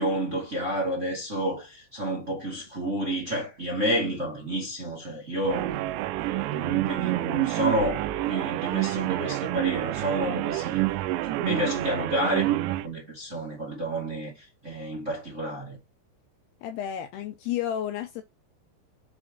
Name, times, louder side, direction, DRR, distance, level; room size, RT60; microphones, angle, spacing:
voice 1, 0.0-6.1 6.5-10.8 11.2-15.8, right 1 dB, 25° right, 1.8 m, -30 dB
sound 1, 5.4-12.9, right 16 dB, 85° right, 2.9 m, -28 dB
voice 2, 16.6-18.2, left 10 dB, 80° left, 2.4 m, -31 dB
5.9 x 5.1 x 6.4 m
omnidirectional pair, 5.1 m